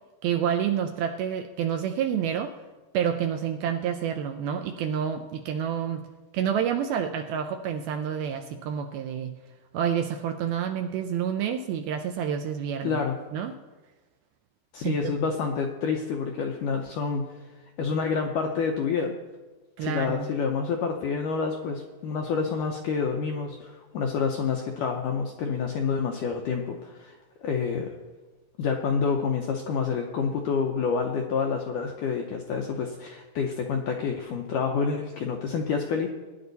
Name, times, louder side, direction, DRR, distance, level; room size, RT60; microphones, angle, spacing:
voice 1, 0.2-2.5 2.9-6.1 6.3-9.3 9.7-13.0 13.3-13.5 14.8-15.1 19.8-20.3, right 8 dB, 80° right, 6 dB, 2.3 m, -28 dB
voice 2, 12.8-13.2 14.7-17.3 17.8-19.1 19.8-27.2 27.4-27.9 28.6-36.1, left 5 dB, 85° left, 2 dB, 1.8 m, -28 dB
20.0 x 10.5 x 4.0 m, 1.3 s
omnidirectional pair, 4.8 m